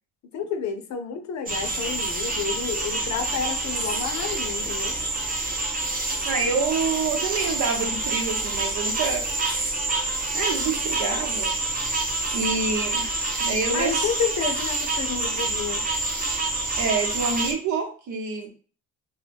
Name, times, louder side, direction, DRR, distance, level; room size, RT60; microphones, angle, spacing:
voice 1, 0.3-4.9 13.7-15.8, left 7 dB, 65° left, 6 dB, 0.6 m, -30 dB
sound 1, 1.5-17.5, right 2 dB, 30° right, 0.6 m, -27 dB
voice 2, 6.3-9.2 10.3-11.5 12.3-14.1 16.8-18.5, right 4 dB, 70° right, 2 dB, 0.9 m, -27 dB
2.2 x 2.2 x 3.3 m, 0.40 s
cardioid pair, 90°, 30 cm